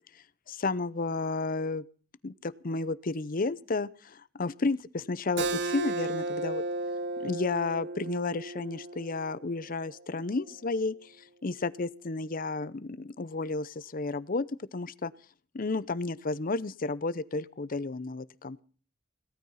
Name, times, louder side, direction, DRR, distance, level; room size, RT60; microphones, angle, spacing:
voice 1, 0.5-1.8 2.2-6.6 7.2-11.1 11.4-14.4 14.7-15.1 15.5-18.6, left 3 dB, 45° left, 17 dB, 0.7 m, -32 dB
Keyboard (musical), 5.4-10.6, right 2 dB, 60° right, 0.9 m, -35 dB
18.0 x 13.0 x 5.7 m, 0.42 s
head